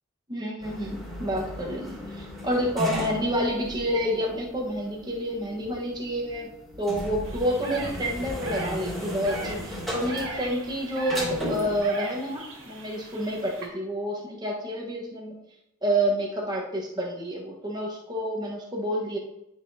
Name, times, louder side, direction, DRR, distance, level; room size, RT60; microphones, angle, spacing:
voice 1, 0.3-6.5 6.8-15.4 15.8-19.2, equal, 20° right, -2 dB, 1.4 m, -29 dB
sound 1, 0.6-11.8, equal, ahead, 2.7 m, -36 dB
sound 2, 7.2-13.7, right 2 dB, 70° right, 2.0 m, -39 dB
11.0 x 5.9 x 2.9 m, 0.88 s
head